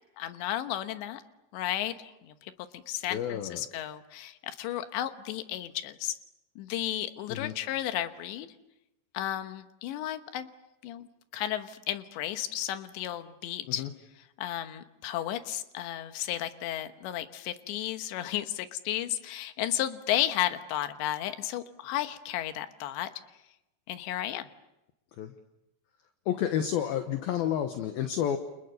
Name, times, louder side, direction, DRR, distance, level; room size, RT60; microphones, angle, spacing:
voice 1, 0.2-1.2 1.5-6.2 6.6-8.5 9.2-10.5 10.8-11.1 11.3-13.8 14.4-23.1 23.9-24.5, left 12 dB, 85° left, 9 dB, 3.5 m, -33 dB
voice 2, 3.1-3.7 7.3-7.5 13.7-13.9 25.2-25.3 26.3-28.4, left 10 dB, 70° left, 7 dB, 2.7 m, -30 dB
30.0 x 29.0 x 6.7 m, 0.92 s
omnidirectional pair, 5.0 m